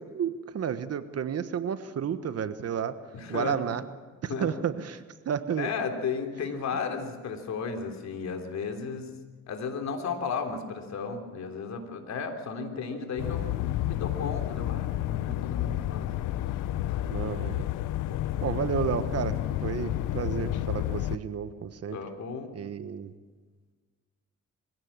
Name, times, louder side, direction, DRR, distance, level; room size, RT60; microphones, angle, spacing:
voice 1, 0.0-2.9 3.3-3.8 4.2-5.7 8.9-9.0 17.0-17.6 18.4-22.0 22.5-23.1, right 8 dB, 55° right, 11 dB, 1.4 m, -32 dB
voice 2, 3.1-3.6 4.3-4.5 5.6-9.1 9.5-16.3 16.9-17.0 21.9-22.5, left 5 dB, 65° left, 5 dB, 3.5 m, -34 dB
sound 1, 13.2-21.2, left 14 dB, 85° left, 0.8 m, -30 dB
23.5 x 17.0 x 7.5 m, 1.4 s
cardioid pair, 90°, 30 cm